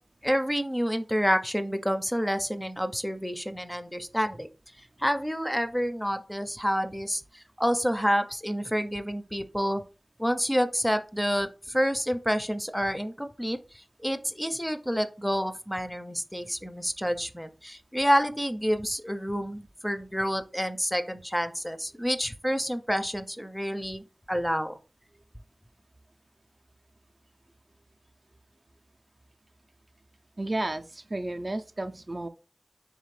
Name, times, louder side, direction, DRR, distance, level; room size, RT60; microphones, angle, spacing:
voice 1, 0.2-4.5 5.0-9.8 10.2-13.6 14.0-24.8, equal, 5° left, 9 dB, 0.5 m, -28 dB
voice 2, 30.4-32.3, right 2 dB, 45° right, 6 dB, 0.4 m, -32 dB
3.6 x 3.4 x 3.2 m, 0.33 s
wide cardioid pair, 45°, 0 cm